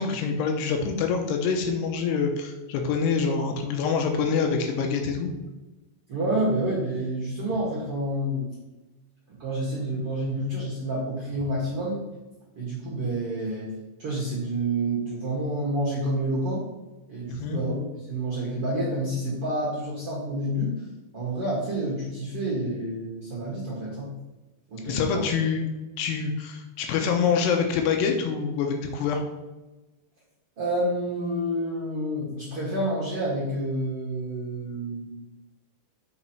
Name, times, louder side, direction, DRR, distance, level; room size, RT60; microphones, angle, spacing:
voice 1, 0.0-5.3 17.3-17.6 24.8-25.7 26.0-29.2, left 5 dB, 80° left, 4 dB, 2.7 m, -26 dB
voice 2, 6.1-8.5 9.3-12.0 12.6-13.7 14.0-16.6 17.1-20.7 21.1-24.1 24.7-25.3 30.6-35.0, right 1 dB, 55° right, -5 dB, 1.6 m, -28 dB
8.2 x 5.5 x 4.4 m, 1.1 s
omnidirectional pair, 5.1 m